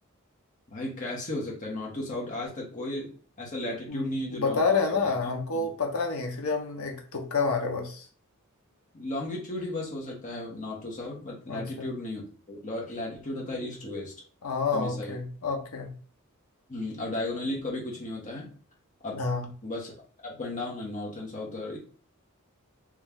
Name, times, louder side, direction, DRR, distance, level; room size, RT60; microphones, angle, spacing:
voice 1, 0.7-3.1 3.4-5.1 5.5-5.7 8.9-14.1 14.7-15.1 16.7-18.5 19.0-19.2 19.6-19.9 20.2-21.8, left 1 dB, 35° left, 1.3 m, -35 dB
voice 2, 3.9-8.0 11.5-11.9 14.4-15.9 19.1-19.5, left 4 dB, 70° left, 0.9 m, -29 dB
3.2 x 3.1 x 3.6 m
head